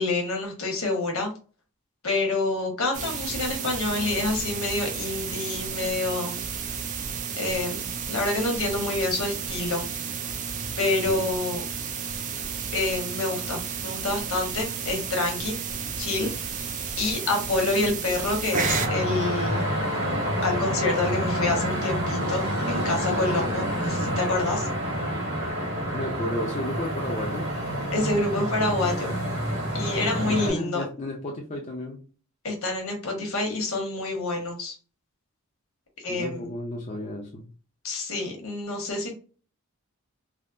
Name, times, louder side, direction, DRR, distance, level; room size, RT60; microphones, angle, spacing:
voice 1, 0.0-1.3 2.0-6.4 7.4-9.8 10.8-11.6 12.7-15.6 16.0-16.7 17.0-19.7 20.4-24.7 27.9-29.1 29.7-30.8 32.4-34.7 36.0-36.5 37.8-39.1, left 2 dB, 70° left, 1.1 m, -27 dB
sound 1, 2.9-18.9, right 6 dB, 35° right, 0.3 m, -32 dB
voice 2, 10.8-11.3 25.9-27.5 30.3-32.0 36.1-37.5, left 1 dB, 30° left, 0.5 m, -33 dB
sound 2, 18.5-30.5, equal, 50° right, 1.5 m, -28 dB
3.5 x 2.0 x 2.5 m
head